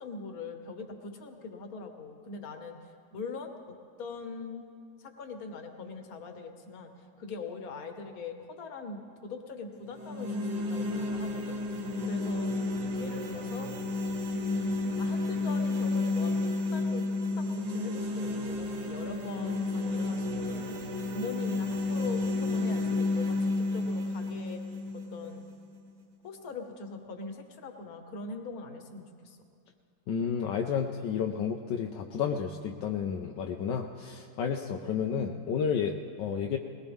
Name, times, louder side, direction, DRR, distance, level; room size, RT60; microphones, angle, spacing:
voice 1, 0.0-4.7 5.0-12.5 13.0-13.7 14.3-20.8 21.1-24.6 24.9-25.5 26.2-29.4, left 3 dB, 55° left, 5 dB, 1.6 m, -42 dB
sound 1, 9.9-25.9, left 2 dB, 60° right, 1.8 m, -31 dB
voice 2, 30.1-36.6, left 7 dB, 75° left, 3 dB, 1.3 m, -31 dB
21.0 x 19.0 x 3.6 m, 2.4 s
omnidirectional pair, 2.0 m